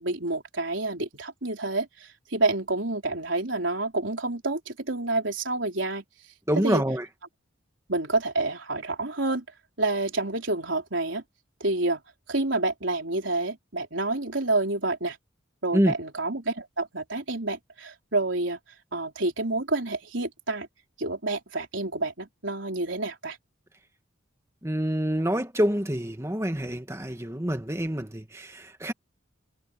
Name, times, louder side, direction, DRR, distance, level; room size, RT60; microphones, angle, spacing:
voice 1, 0.0-6.0 6.6-6.8 7.9-9.4 9.8-11.2 11.6-12.0 12.3-15.2 15.6-18.6 18.9-20.7 21.0-23.4, right 2 dB, 70° right, 4.0 m, -28 dB
voice 2, 6.5-7.1 15.7-15.9 24.6-28.9, equal, 15° right, 1.8 m, -26 dB
head